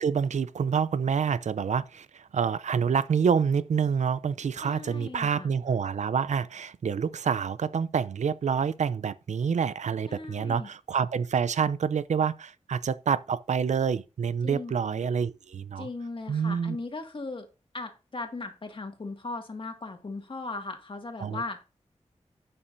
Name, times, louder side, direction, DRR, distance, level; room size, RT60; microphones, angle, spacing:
voice 1, 0.0-15.9 16.3-16.8 21.2-21.4, right 6 dB, 85° right, 0.5 m, -27 dB
voice 2, 4.6-5.5 10.1-10.7 14.4-14.7 15.8-17.5 17.7-21.6, left 3 dB, 45° left, 2.0 m, -38 dB
11.0 x 8.9 x 2.7 m
wide cardioid pair, 95°, 12 cm